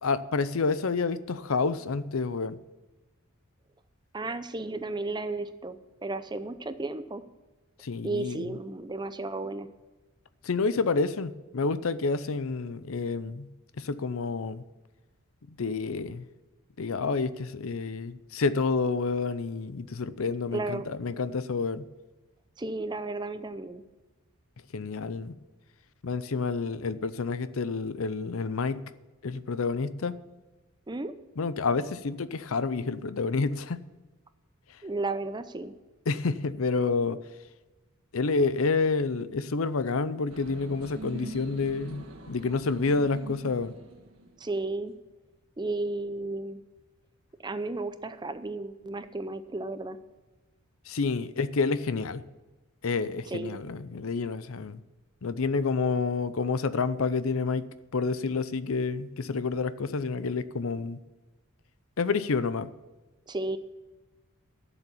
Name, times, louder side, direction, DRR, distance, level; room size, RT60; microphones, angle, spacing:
voice 1, 0.0-2.6 7.8-8.4 10.4-13.5 13.8-14.6 15.5-16.2 16.8-21.9 24.7-25.4 26.0-28.8 29.2-30.1 31.4-33.8 36.1-37.2 38.1-43.7 50.9-52.2 52.8-54.8 55.2-57.7 57.9-61.0 62.0-62.7, left 4 dB, 65° left, 0.6 m, -29 dB
voice 2, 4.1-7.2 8.0-9.7 20.5-20.9 22.6-23.8 30.9-31.1 34.8-35.7 44.4-44.9 45.6-46.6 47.4-50.0 53.3-53.6 63.3-63.6, right 2 dB, 20° right, 0.6 m, -33 dB
sound 1, 40.3-44.7, right 2 dB, 70° right, 1.8 m, -44 dB
12.0 x 7.1 x 7.1 m
head